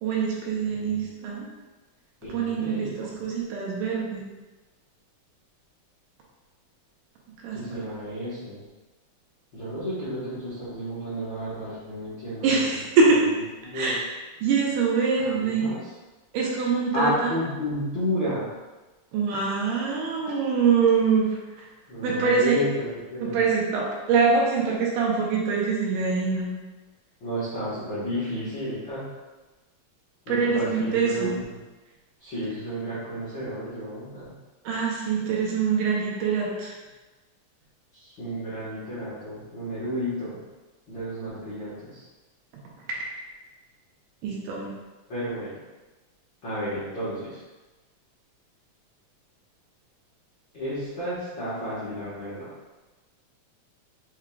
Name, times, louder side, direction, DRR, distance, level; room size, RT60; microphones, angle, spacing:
voice 1, 0.0-1.5 2.3-4.2 7.4-7.8 12.4-13.2 13.7-14.0 14.4-15.7 16.3-17.4 19.1-21.3 22.0-22.6 23.2-26.5 30.3-31.3 34.7-36.7 44.2-44.7, right 5 dB, 75° right, -3 dB, 2.2 m, -24 dB
voice 2, 0.7-1.0 2.2-2.9 7.5-8.6 9.5-12.8 13.6-14.0 15.2-15.8 16.9-18.5 21.9-23.4 27.2-29.0 30.3-31.6 32.2-34.2 38.0-40.4 40.9-42.0 45.1-45.5 46.4-47.4 50.5-52.5, equal, 55° left, -13 dB, 1.3 m, -32 dB
5.9 x 3.6 x 2.2 m, 1.2 s
omnidirectional pair, 4.0 m